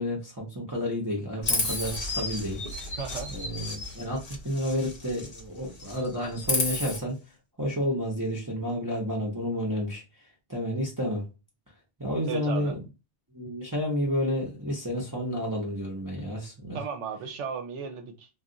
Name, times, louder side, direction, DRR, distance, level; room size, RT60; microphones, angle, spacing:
voice 1, 0.0-3.0 3.3-7.2 7.6-10.0 10.5-11.2 12.0-12.8 13.3-16.8, equal, 20° right, 0.7 m, -30 dB
Chirp tweet, 1.4-5.5 5.7-7.0, left 2 dB, 45° left, 0.9 m, -32 dB
voice 2, 3.0-3.3 12.3-12.7 16.7-18.3, right 6 dB, 75° right, 0.9 m, -35 dB
2.4 x 2.3 x 3.8 m
omnidirectional pair, 1.3 m